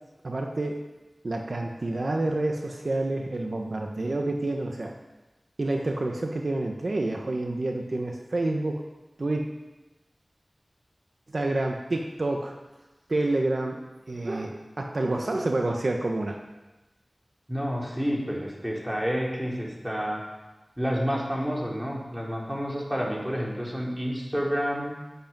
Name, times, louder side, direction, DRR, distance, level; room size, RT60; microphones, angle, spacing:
voice 1, 0.2-0.8 1.2-4.9 5.6-8.8 9.2-9.4 11.3-12.5 13.1-13.8 14.1-16.4, right 2 dB, 65° right, 2 dB, 1.3 m, -28 dB
voice 2, 17.5-20.2 20.8-24.9, equal, 10° right, -3 dB, 4.2 m, -29 dB
11.5 x 8.6 x 9.0 m, 1.1 s
wide cardioid pair, 65°, 0 cm